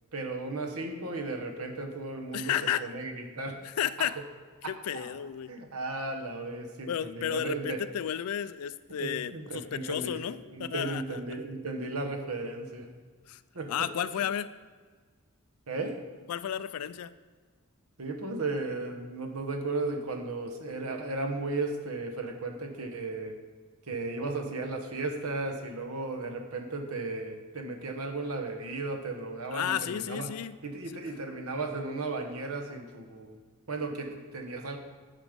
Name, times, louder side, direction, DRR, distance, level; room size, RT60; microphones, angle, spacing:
voice 1, 0.1-2.5 2.8-3.6 4.0-4.1 4.6-5.1 5.5-7.8 9.0-10.2 10.5-12.9 13.5-13.9 15.7-15.9 18.0-23.3 23.9-30.3 30.6-33.4 33.7-34.8, right 3 dB, 85° right, 4 dB, 1.1 m, -35 dB
voice 2, 2.3-2.9 3.6-4.2 4.7-5.5 6.9-11.2 13.3-13.4 13.7-14.5 16.3-17.1 29.5-30.6 30.9-31.0, left 9 dB, 90° left, 15 dB, 0.4 m, -32 dB
9.3 x 5.1 x 5.2 m, 1.5 s
head